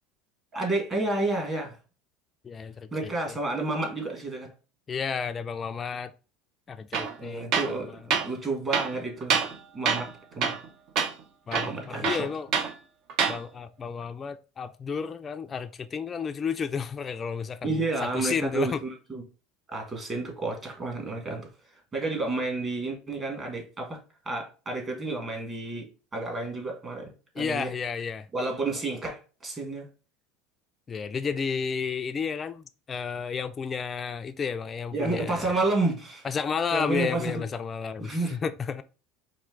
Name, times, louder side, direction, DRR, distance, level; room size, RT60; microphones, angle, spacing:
voice 1, 0.5-1.8 2.9-4.5 7.2-9.4 9.7-10.1 10.3-10.6 11.7-12.3 17.6-19.2 19.7-24.0 24.2-25.9 26.1-27.1 27.3-27.7 28.3-29.9 34.9-36.3 36.7-37.4 38.0-38.4, right 2 dB, 25° right, 1.5 m, -30 dB
voice 2, 2.4-3.4 4.9-6.1 6.7-7.8 11.5-12.5 13.3-17.9 18.1-18.8 27.4-28.3 30.9-35.5 36.2-38.8, left 6 dB, 25° left, 0.3 m, -32 dB
Tools, 6.9-7.1 7.5-7.8 8.1-8.3 8.7-9.6 9.9-10.1 10.4-10.7 11.0-11.1 11.5-12.7 13.1-13.4, right 6 dB, 55° right, 0.6 m, -26 dB
4.3 x 2.6 x 3.7 m
supercardioid pair, 120°, 0 cm